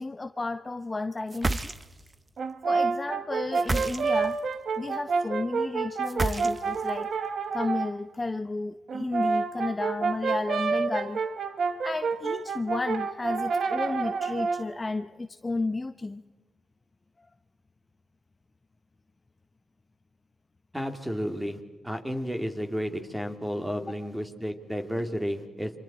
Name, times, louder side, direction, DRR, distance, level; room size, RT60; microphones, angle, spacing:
voice 1, 0.0-1.7 2.6-4.4 4.8-7.1 7.5-11.2 11.8-16.2 23.9-24.0, left 3 dB, 25° left, 9 dB, 0.8 m, -32 dB
sound 1, 1.3-2.1 3.5-4.4 6.1-6.9, right 2 dB, 25° right, 0.9 m, -30 dB
Brass instrument, 2.4-7.9 8.9-14.7, right 5 dB, 60° right, 1.3 m, -29 dB
voice 2, 20.7-21.6 21.8-25.7, equal, 5° right, 5 dB, 2.7 m, -32 dB
30.0 x 25.0 x 4.4 m, 1.4 s
cardioid pair, 80°, 0 cm